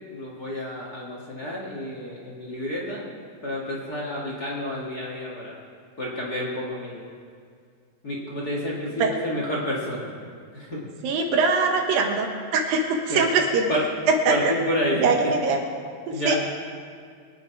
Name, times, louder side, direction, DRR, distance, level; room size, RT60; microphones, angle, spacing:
voice 1, 0.1-5.5 6.0-7.0 8.0-10.8 13.1-13.3 13.7-13.8 14.3-15.0 16.1-16.4, equal, 30° left, -4 dB, 2.0 m, -30 dB
voice 2, 11.0-13.7 14.3-14.5 15.0-15.6 16.2-16.4, right 4 dB, 80° right, 2 dB, 3.1 m, -22 dB
23.0 x 9.4 x 4.7 m, 2.2 s
omnidirectional pair, 4.1 m